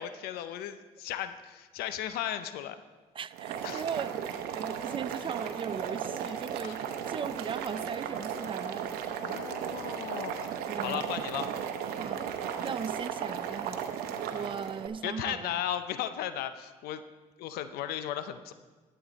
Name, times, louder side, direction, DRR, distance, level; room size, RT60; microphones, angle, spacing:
voice 1, 0.0-2.8 3.6-3.8 6.6-6.8 9.2-10.5 10.8-11.5 14.3-14.5 15.0-17.0 17.4-18.5, left 11 dB, 85° left, 0.5 m, -36 dB
voice 2, 3.1-6.8 7.1-9.0 10.7-11.1 12.0-12.3 12.6-13.9 14.3-15.6, right 7 dB, 35° right, 0.4 m, -38 dB
Boiling, 3.3-14.9, right 8 dB, 85° right, 0.8 m, -35 dB
11.5 x 8.0 x 4.0 m
cardioid pair, 80°, 16 cm